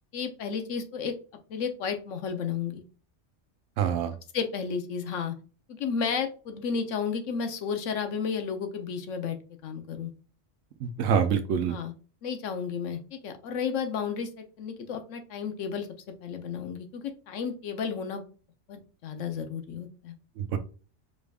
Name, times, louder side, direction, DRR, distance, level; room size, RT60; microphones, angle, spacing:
voice 1, 0.1-1.1 1.5-2.8 4.3-5.3 5.7-9.4 9.6-10.1 11.7-11.9 12.2-15.9 16.2-18.2 18.7-20.1, left 6 dB, 90° left, 6 dB, 1.1 m, -32 dB
voice 2, 3.8-4.1 10.8-11.8 20.4-20.6, right 7 dB, 85° right, 8 dB, 1.0 m, -26 dB
4.8 x 3.4 x 2.3 m, 0.37 s
omnidirectional pair, 1.2 m